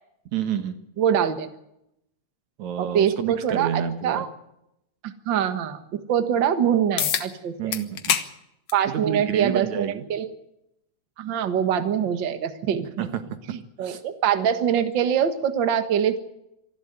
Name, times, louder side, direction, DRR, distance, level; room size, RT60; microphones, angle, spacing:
voice 1, 0.3-0.8 2.6-4.3 7.6-8.2 8.9-10.1 13.0-14.0, right 8 dB, 75° right, 10 dB, 2.7 m, -29 dB
voice 2, 1.0-1.5 2.8-4.3 5.0-7.7 8.7-10.3 11.2-13.1 13.8-16.2, right 8 dB, 45° right, 9 dB, 1.9 m, -24 dB
sound 1, 7.0-7.3 7.7-8.3 8.7-8.8 9.9-10.0 14.9-15.0, left 10 dB, 65° left, 2.4 m, -25 dB
26.0 x 12.0 x 9.0 m, 0.82 s
omnidirectional pair, 3.3 m